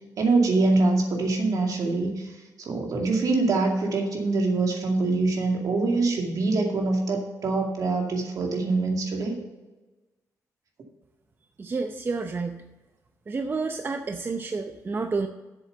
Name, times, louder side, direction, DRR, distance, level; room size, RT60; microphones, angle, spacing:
voice 1, 0.2-2.3 2.6-9.4, right 3 dB, 65° right, 1 dB, 2.3 m, -24 dB
voice 2, 11.6-12.6 13.3-15.3, right 4 dB, 35° right, 6 dB, 0.6 m, -29 dB
7.7 x 7.5 x 6.8 m, 1.2 s
cardioid pair, 120°, 6 cm